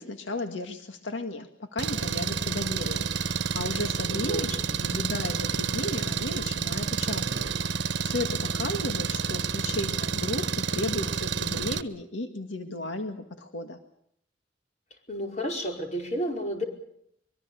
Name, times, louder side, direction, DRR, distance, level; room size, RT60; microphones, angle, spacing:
voice 1, 0.0-13.8, left 2 dB, 85° left, 5 dB, 1.9 m, -35 dB
Engine, 1.8-11.8, right 5 dB, 70° right, 1.2 m, -29 dB
voice 2, 4.1-4.8 15.1-16.6, equal, 40° left, 2 dB, 5.1 m, -32 dB
24.5 x 23.5 x 7.0 m, 0.71 s
head